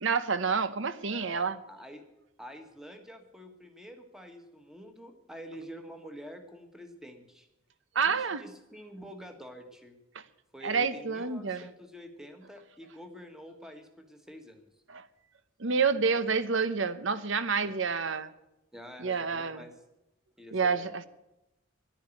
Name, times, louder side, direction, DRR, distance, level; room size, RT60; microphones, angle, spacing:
voice 1, 0.0-1.6 7.9-8.4 10.6-11.6 14.9-15.0 15.6-18.3 19.0-19.6 20.5-21.1, right 5 dB, 60° right, 14 dB, 0.9 m, -28 dB
voice 2, 1.1-2.0 2.4-7.5 8.0-10.0 10.5-14.6 17.6-17.7 18.7-19.8 20.4-20.8, equal, ahead, 6 dB, 1.6 m, -47 dB
11.5 x 10.0 x 9.1 m, 0.91 s
head